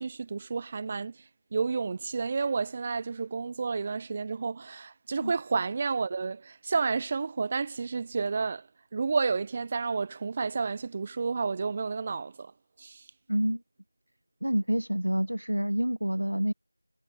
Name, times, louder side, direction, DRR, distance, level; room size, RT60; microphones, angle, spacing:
voice 1, 0.0-8.7 8.9-12.5 12.8-13.1, right 4 dB, 10° right, 0.4 m, -31 dB
voice 2, 13.3-13.6 14.4-16.5, equal, 85° right, 1.3 m, -27 dB
figure-of-eight pair, 180°, 0 cm